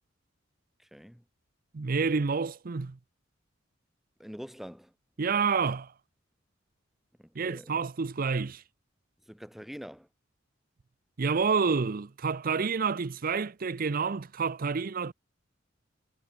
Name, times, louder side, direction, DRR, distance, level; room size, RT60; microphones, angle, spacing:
voice 1, 0.8-1.2 4.2-4.9 7.2-7.8 9.3-10.1, equal, ahead, 0.6 m, -45 dB
voice 2, 1.7-3.0 5.2-5.9 7.4-8.6 11.2-15.1, right 5 dB, 45° right, 0.6 m, -28 dB
head